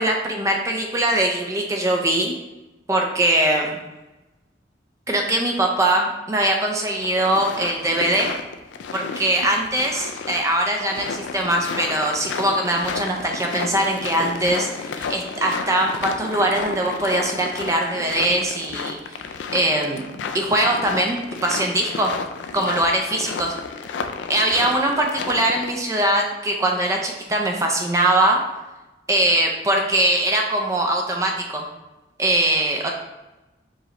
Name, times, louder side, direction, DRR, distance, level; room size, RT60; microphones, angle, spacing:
voice 1, 0.0-2.3 2.9-3.8 5.1-8.3 8.9-19.2 19.5-20.1 20.3-22.1 22.5-23.5 24.3-28.4 29.1-31.6 32.2-32.9, right 1 dB, 15° right, 1 dB, 0.4 m, -21 dB
sound 1, 7.0-25.7, left 5 dB, 75° left, 0.3 m, -32 dB
4.7 x 2.9 x 3.1 m, 1.1 s
head